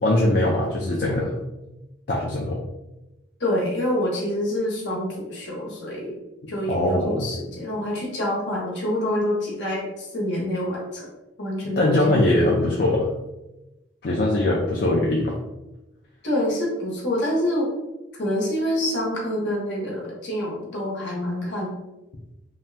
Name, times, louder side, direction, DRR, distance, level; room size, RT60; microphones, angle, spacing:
voice 1, 0.0-1.4 2.1-2.6 6.4-7.2 11.8-13.1 14.0-15.4, left 1 dB, 50° left, -3 dB, 0.4 m, -21 dB
voice 2, 3.4-6.2 6.5-11.1 11.4-12.2 16.2-17.7 18.2-21.7, left 1 dB, 70° left, -3 dB, 1.0 m, -26 dB
2.8 x 2.2 x 3.2 m, 0.99 s
head